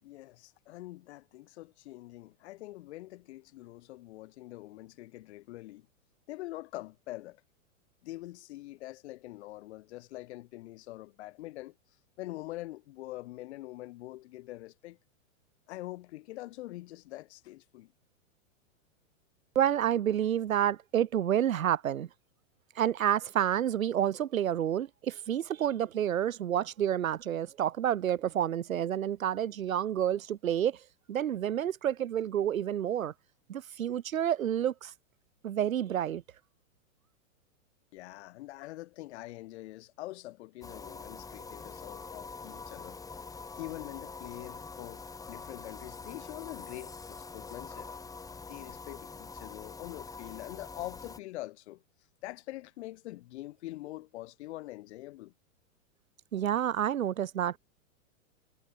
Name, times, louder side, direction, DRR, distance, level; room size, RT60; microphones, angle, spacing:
voice 1, 0.0-5.9 6.3-7.4 8.0-11.7 12.2-15.0 15.7-17.9 37.9-43.0 43.6-47.9 48.5-51.8 52.2-55.3, left 17 dB, 55° left, 5.2 m, -44 dB
voice 2, 19.5-22.1 22.8-30.8 31.1-33.1 33.5-34.9 35.4-36.2 56.3-57.6, right 10 dB, 85° right, 3.2 m, -29 dB
sound 1, 40.6-51.2, left 4 dB, 10° left, 3.1 m, -45 dB
hypercardioid pair, 150°, 40 cm